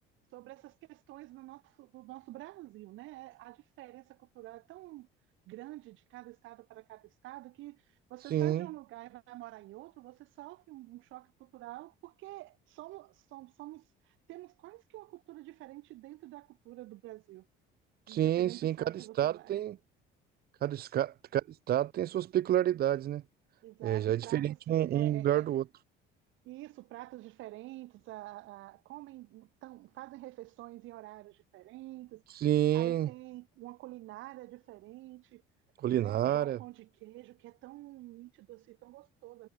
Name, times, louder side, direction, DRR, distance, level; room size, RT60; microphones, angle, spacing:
voice 1, 0.3-5.1 5.5-7.8 8.1-17.5 18.1-19.6 23.6-25.5 26.4-32.2 32.7-35.4 36.0-39.5, right 18 dB, 70° right, 5.4 m, -48 dB
voice 2, 8.3-8.7 18.1-19.7 20.6-23.2 23.8-25.6 32.3-33.1 35.8-36.6, right 12 dB, 50° right, 1.8 m, -29 dB
cardioid pair, 145°, 20 cm